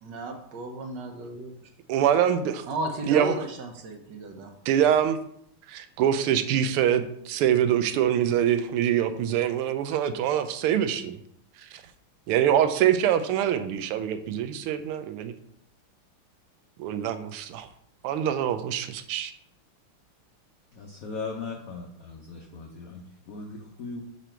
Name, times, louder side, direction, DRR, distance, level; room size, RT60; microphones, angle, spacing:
voice 1, 0.0-1.7 2.7-4.5, right 2 dB, 65° right, 4 dB, 1.3 m, -34 dB
voice 2, 1.9-2.7 3.1-3.3 4.7-5.2 5.7-11.2 11.7-11.8 12.3-15.3 16.8-17.7 18.0-19.3, right 10 dB, 90° right, 10 dB, 1.5 m, -24 dB
voice 3, 20.7-24.0, left 4 dB, 75° left, 1 dB, 0.8 m, -38 dB
6.2 x 3.9 x 4.4 m, 0.70 s
omnidirectional pair, 2.4 m